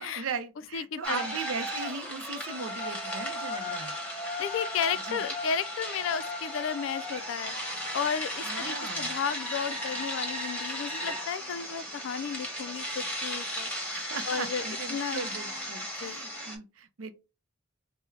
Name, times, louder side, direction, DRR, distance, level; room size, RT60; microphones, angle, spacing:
voice 1, 0.0-4.0 5.0-5.2 8.4-9.2 13.9-17.1, right 5 dB, 85° right, 0.6 m, -38 dB
voice 2, 0.7-1.3 4.4-7.5 7.9-13.7 14.3-14.6 14.9-15.2 16.0-16.2, left 7 dB, 70° left, 0.3 m, -33 dB
sound 1, 1.0-16.6, equal, 5° left, 0.9 m, -35 dB
3.4 x 2.1 x 3.2 m
head